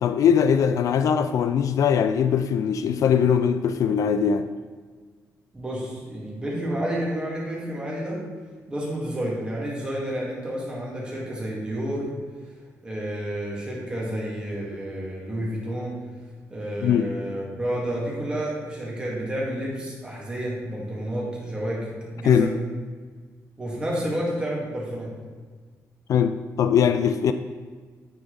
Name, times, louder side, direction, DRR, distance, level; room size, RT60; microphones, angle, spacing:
voice 1, 0.0-4.5 16.8-17.1 22.2-22.5 26.1-27.3, left 7 dB, 65° left, 10 dB, 0.4 m, -21 dB
voice 2, 5.5-8.2 8.7-12.1 12.8-16.0 16.5-22.6 23.6-25.1, right 1 dB, 15° right, -4 dB, 2.2 m, -30 dB
9.7 x 4.7 x 4.0 m, 1.5 s
cardioid pair, 135°, 6 cm